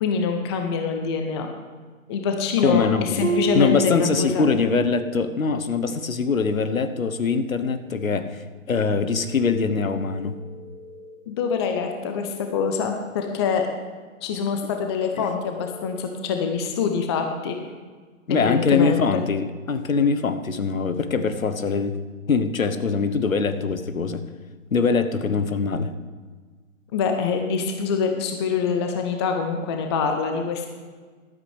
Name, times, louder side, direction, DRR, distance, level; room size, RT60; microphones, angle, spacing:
voice 1, 0.0-1.5 2.1-4.5 11.3-13.6 14.2-17.6 18.3-19.2 26.9-30.7, left 6 dB, 20° left, 4 dB, 0.7 m, -25 dB
voice 2, 2.6-3.2 3.5-10.3 15.2-15.3 18.3-21.9 22.3-24.2 24.7-25.9, left 5 dB, 75° left, 10 dB, 1.2 m, -23 dB
Harp, 3.2-5.0 5.3-5.7 6.3-6.4, right 3 dB, 85° right, 1.3 m, -28 dB
sound 1, 9.2-11.2 15.2-16.0, left 2 dB, 65° right, 2.5 m, -44 dB
13.5 x 12.5 x 3.4 m, 1.5 s
figure-of-eight pair, 140°, 41 cm